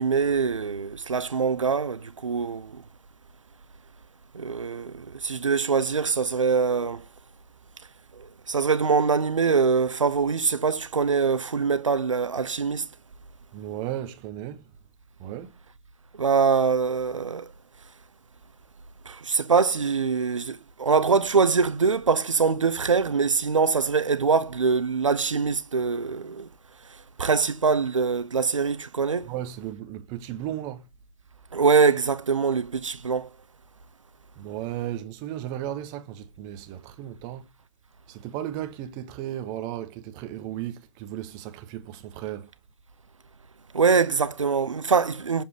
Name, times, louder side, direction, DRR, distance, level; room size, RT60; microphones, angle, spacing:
voice 1, 0.0-2.7 4.3-7.0 8.5-12.8 16.2-17.4 19.1-26.5 27.2-29.3 31.5-33.3 43.7-45.4, right 5 dB, 85° right, 0.8 m, -23 dB
voice 2, 13.5-14.7 15.2-15.5 29.2-30.9 34.4-37.5 38.1-42.5, right 12 dB, 25° right, 0.9 m, -35 dB
7.2 x 3.6 x 5.0 m
hypercardioid pair, 140°, 16 cm